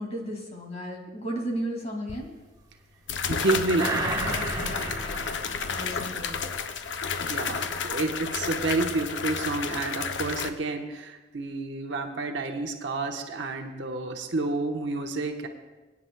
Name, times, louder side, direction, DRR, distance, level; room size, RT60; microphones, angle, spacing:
voice 1, 0.0-2.3 4.6-5.3 5.7-6.3, right 1 dB, 35° left, 1 dB, 2.3 m, -34 dB
sound 1, 2.1-2.2 3.1-10.5, left 5 dB, 65° left, 0.6 m, -31 dB
voice 2, 3.3-4.0 7.2-15.5, right 3 dB, 70° right, 3 dB, 1.1 m, -29 dB
sound 2, 3.8-6.7 7.1-7.2, right 2 dB, 20° right, 1.1 m, -33 dB
24.0 x 9.7 x 2.3 m, 1.2 s
head